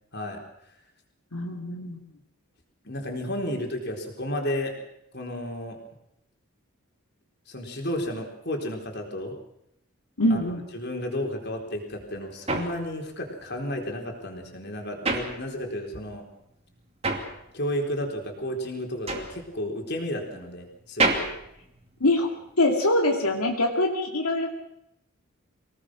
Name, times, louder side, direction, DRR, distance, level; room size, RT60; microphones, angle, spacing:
voice 1, 0.1-0.4 2.8-4.8 5.1-5.8 7.5-9.3 10.3-10.4 10.7-16.3 17.5-21.3, left 1 dB, 50° left, 2 dB, 4.2 m, -32 dB
voice 2, 1.3-2.1 10.2-10.6 22.0-22.3 22.6-24.5, left 1 dB, 90° left, 1 dB, 2.5 m, -24 dB
sound 1, 11.7-16.0 16.3-22.5, right 3 dB, 25° right, 2.7 m, -31 dB
24.5 x 18.5 x 6.4 m, 0.79 s
head